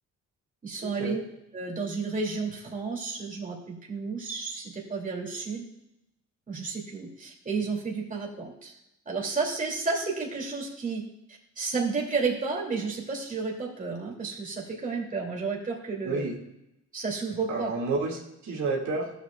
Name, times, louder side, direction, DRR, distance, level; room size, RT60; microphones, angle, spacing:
voice 1, 0.6-1.2 1.5-5.6 6.5-8.8 9.1-11.0 11.3-16.3 16.9-17.7, right 4 dB, 25° right, -2 dB, 2.6 m, -32 dB
voice 2, 16.0-16.4 17.5-19.1, right 3 dB, 70° right, -3 dB, 2.1 m, -30 dB
13.0 x 7.9 x 2.3 m, 0.85 s
cardioid pair, 90°, 30 cm